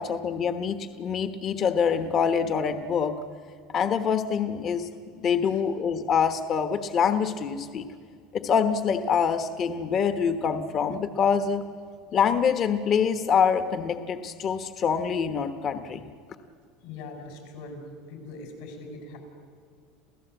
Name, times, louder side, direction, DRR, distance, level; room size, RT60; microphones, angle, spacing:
voice 1, 0.0-3.2 3.7-4.9 5.2-7.9 8.3-11.6 12.1-16.0, left 7 dB, 35° left, 9 dB, 1.1 m, -25 dB
voice 2, 16.8-17.8 18.1-19.2, left 3 dB, 75° left, 4 dB, 6.1 m, -41 dB
28.5 x 15.5 x 8.1 m, 2.1 s
supercardioid pair, 135°, 0 cm